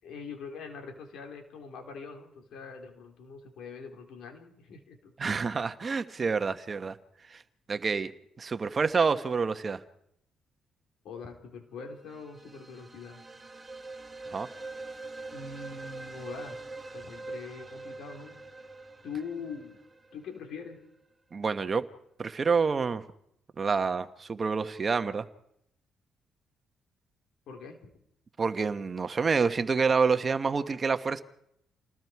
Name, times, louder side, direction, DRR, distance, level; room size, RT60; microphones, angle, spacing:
voice 1, 0.0-5.4 11.0-13.2 15.3-16.6 16.9-18.4 19.0-19.8 20.1-20.8 27.5-27.9, left 5 dB, 80° left, 4 dB, 4.1 m, -43 dB
voice 2, 5.2-7.0 7.3-7.4 7.7-8.1 8.4-9.8 14.3-14.5 21.3-21.9 22.2-23.0 23.6-25.3 28.4-31.2, right 5 dB, 35° right, 10 dB, 1.3 m, -28 dB
Abandoned Area, 11.9-20.8, right 3 dB, 20° right, 2.5 m, -44 dB
28.5 x 19.5 x 4.8 m, 0.74 s
cardioid pair, 90°, 0 cm